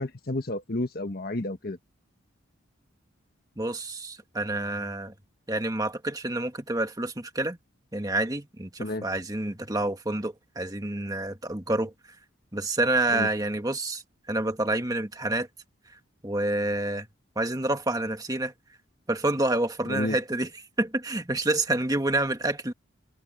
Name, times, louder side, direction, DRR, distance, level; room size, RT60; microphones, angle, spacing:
voice 1, 0.0-1.8 8.8-9.0 13.1-13.3 19.9-20.2, left 1 dB, 50° left, 1.4 m, -31 dB
voice 2, 3.6-5.1 5.5-7.6 7.9-11.9 12.5-14.0 14.3-15.5 16.2-17.1 17.3-18.5 19.1-20.5 20.8-22.7, right 2 dB, 20° right, 1.7 m, -28 dB
head